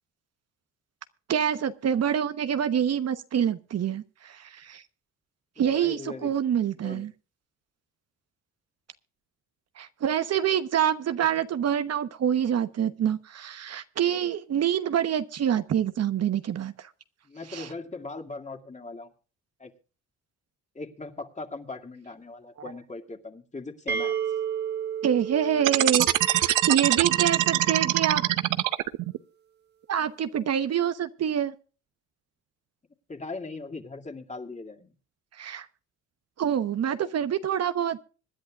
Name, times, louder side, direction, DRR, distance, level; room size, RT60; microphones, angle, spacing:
voice 1, 1.3-4.8 5.6-7.1 9.8-16.9 17.5-17.7 25.0-28.2 29.9-31.5 35.4-35.7 36.4-38.0, right 9 dB, 55° right, 10 dB, 1.0 m, -26 dB
voice 2, 5.6-6.3 6.8-7.0 17.2-19.1 19.6-19.7 20.7-24.1 33.1-34.9, left 3 dB, 25° left, 5 dB, 2.3 m, -39 dB
sound 1, 23.9-27.6, right 8 dB, 35° right, 1.3 m, -33 dB
sound 2, 25.6-29.2, right 14 dB, 90° right, 0.8 m, -23 dB
25.5 x 10.5 x 2.4 m, 0.36 s
cardioid pair, 90°, 30 cm